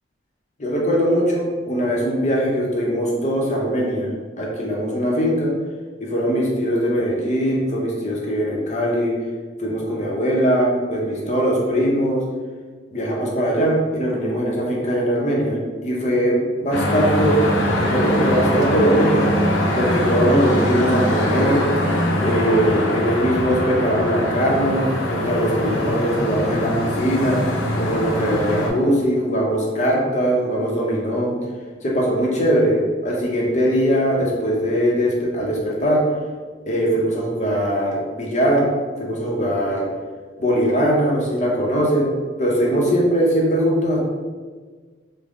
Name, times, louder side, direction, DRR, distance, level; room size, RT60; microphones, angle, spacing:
voice 1, 0.6-4.1 4.4-5.5 6.0-9.1 9.6-12.2 12.9-17.4 17.7-19.3 19.8-21.7 22.2-27.4 27.8-31.3 31.8-36.0 36.7-38.7 39.0-39.9 40.4-42.1 42.4-44.0, equal, 35° left, -2 dB, 0.6 m, -21 dB
sound 1, 16.7-28.7, equal, 90° left, 0.6 m, -22 dB
3.4 x 2.1 x 3.6 m, 1.5 s
head